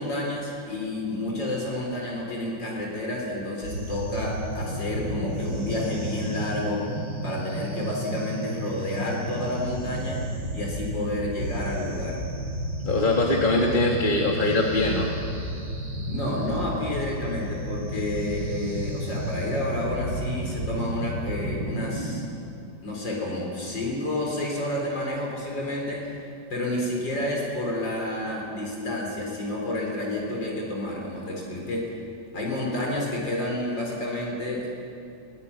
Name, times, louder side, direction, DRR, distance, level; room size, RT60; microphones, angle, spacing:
voice 1, 0.0-6.9 7.2-10.3 10.5-12.2 16.1-22.2 22.8-26.2 26.5-31.9 32.3-34.7, left 1 dB, 85° left, -2 dB, 5.0 m, -30 dB
sound 1, 3.6-22.2, right 1 dB, 80° right, 4.9 m, -32 dB
voice 2, 12.8-15.1, left 2 dB, 30° left, -1 dB, 1.9 m, -22 dB
22.0 x 17.5 x 10.0 m, 2.6 s
omnidirectional pair, 1.9 m